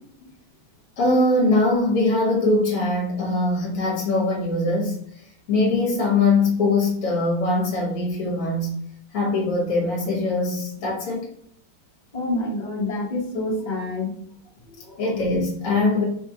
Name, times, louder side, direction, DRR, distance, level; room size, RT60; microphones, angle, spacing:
voice 1, 1.0-5.0 5.5-8.7 9.1-11.3 15.0-16.0, left 2 dB, 50° left, -3 dB, 1.1 m, -22 dB
voice 2, 12.1-14.1 14.8-15.1, left 2 dB, 75° left, -4 dB, 0.3 m, -27 dB
4.2 x 2.2 x 2.7 m, 0.65 s
omnidirectional pair, 2.1 m